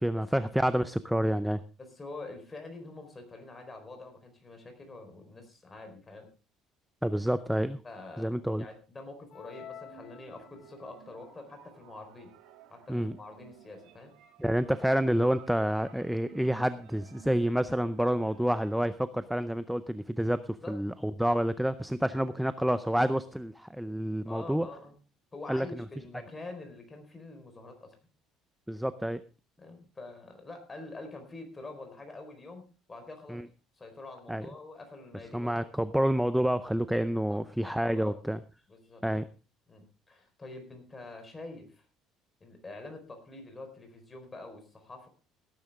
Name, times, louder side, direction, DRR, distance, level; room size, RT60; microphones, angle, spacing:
voice 1, 0.0-1.6 7.0-7.8 8.2-8.7 12.9-13.1 14.4-24.7 25.5-25.8 28.7-29.2 33.3-33.5 34.3-34.5 35.3-38.4 39.0-39.3, equal, ahead, 12 dB, 0.5 m, -28 dB
voice 2, 1.8-6.3 7.8-12.3 12.7-14.1 20.6-20.8 24.3-24.9 25.3-28.0 29.6-33.4 33.8-35.7 37.3-37.4 37.7-38.2 38.7-39.0 39.7-41.8 42.4-45.1, left 2 dB, 15° left, 5 dB, 4.3 m, -46 dB
sound 1, 9.3-11.0, left 9 dB, 50° left, 1.5 m, -49 dB
sound 2, 9.8-18.7, right 10 dB, 85° right, 2.7 m, -56 dB
17.5 x 10.5 x 3.6 m, 0.33 s
cardioid pair, 135°, 0 cm